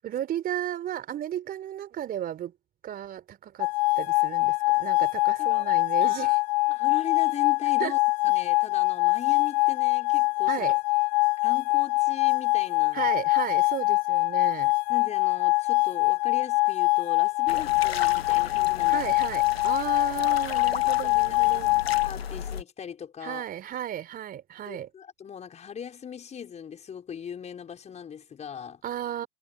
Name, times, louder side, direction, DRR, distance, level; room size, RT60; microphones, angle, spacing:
voice 1, 0.0-2.5 2.8-3.7 4.0-6.3 7.8-8.0 10.5-10.8 12.9-14.7 18.9-21.7 23.2-24.9 28.8-29.3, right 11 dB, 30° right, 4.2 m, -34 dB
sound 1, 3.6-22.1, left 25 dB, 45° left, 0.4 m, -24 dB
voice 2, 5.4-5.7 6.0-8.0 8.2-10.6 11.4-13.1 13.5-13.6 14.4-14.5 14.9-19.0 20.8-21.5 22.0-23.5 24.7-28.8, left 7 dB, 20° left, 5.6 m, -40 dB
sound 2, 17.5-22.6, left 7 dB, 80° left, 2.0 m, -37 dB
hypercardioid pair, 100°, 30 cm